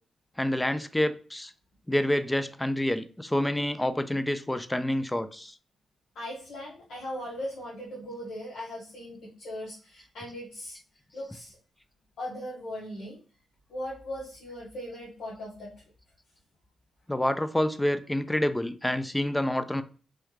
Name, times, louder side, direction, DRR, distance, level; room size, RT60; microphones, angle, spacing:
voice 1, 0.4-1.5 1.9-5.5 17.1-19.8, left 1 dB, 10° left, 0.3 m, -28 dB
voice 2, 6.1-10.8 11.1-11.6 12.2-13.2 13.7-15.7, equal, 80° left, 1.0 m, -39 dB
3.2 x 2.3 x 3.1 m
cardioid pair, 85°, 0 cm